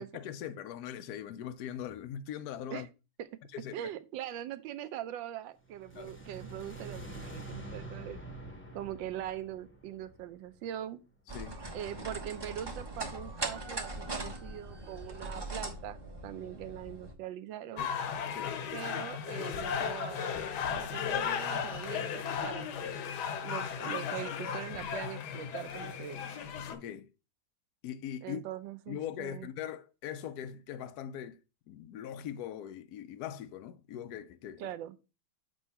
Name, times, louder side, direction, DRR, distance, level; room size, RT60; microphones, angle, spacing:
voice 1, 0.0-2.9 3.5-3.8 6.0-6.1 11.3-11.6 18.3-18.6 26.7-27.1 27.8-28.4 28.9-31.4 31.7-34.7, left 10 dB, 85° left, 0.8 m, -41 dB
voice 2, 3.7-8.2 8.7-11.0 11.7-16.0 16.2-17.9 18.7-23.2 23.4-26.2 28.2-29.5 34.6-35.0, right 11 dB, 75° right, 1.3 m, -42 dB
sound 1, 5.7-10.8, right 2 dB, 15° left, 0.4 m, -46 dB
sound 2, 11.3-17.1, right 2 dB, 20° right, 0.7 m, -40 dB
sound 3, 17.8-26.7, left 7 dB, 65° left, 1.1 m, -35 dB
7.7 x 3.1 x 5.5 m
omnidirectional pair, 2.3 m